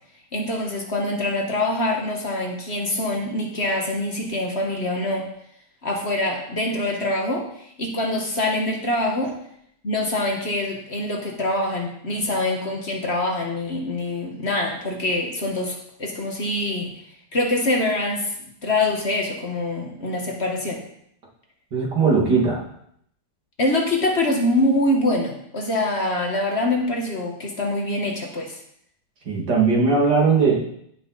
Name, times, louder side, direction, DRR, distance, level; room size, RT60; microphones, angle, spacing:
voice 1, 0.3-5.3 5.8-7.5 7.8-9.3 9.8-16.9 17.3-18.3 18.6-20.8 23.6-28.6, left 1 dB, 40° left, 0 dB, 1.6 m, -24 dB
voice 2, 21.7-22.6 29.3-30.6, right 4 dB, 80° right, -2 dB, 3.0 m, -19 dB
15.5 x 5.7 x 4.1 m, 0.70 s
omnidirectional pair, 1.8 m